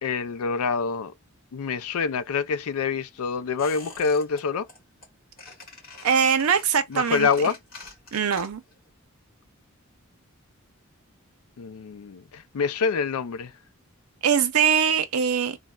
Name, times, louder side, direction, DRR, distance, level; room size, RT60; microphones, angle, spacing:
voice 1, 0.0-1.1 1.5-4.7 6.9-7.6 11.6-13.5, left 5 dB, 90° left, 0.4 m, -26 dB
Squeak, 3.6-4.4 4.7-5.1 5.4-8.8 9.0-9.1, left 3 dB, 45° left, 2.2 m, -45 dB
voice 2, 6.0-7.3 8.1-8.6 14.2-15.6, right 7 dB, 85° right, 0.5 m, -22 dB
3.9 x 2.1 x 2.2 m
head